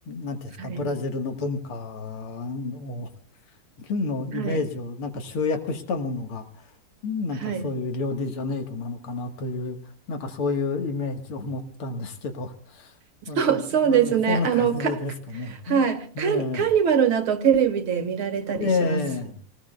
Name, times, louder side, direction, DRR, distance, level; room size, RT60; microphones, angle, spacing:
voice 1, 0.1-3.1 3.8-6.7 7.0-9.8 10.1-12.9 13.3-15.9 16.2-16.7 18.5-19.3, left 3 dB, 85° left, 2.3 m, -30 dB
voice 2, 13.4-15.0 15.7-19.1, right 7 dB, 70° right, 2.3 m, -23 dB
28.5 x 19.5 x 2.2 m
omnidirectional pair, 2.4 m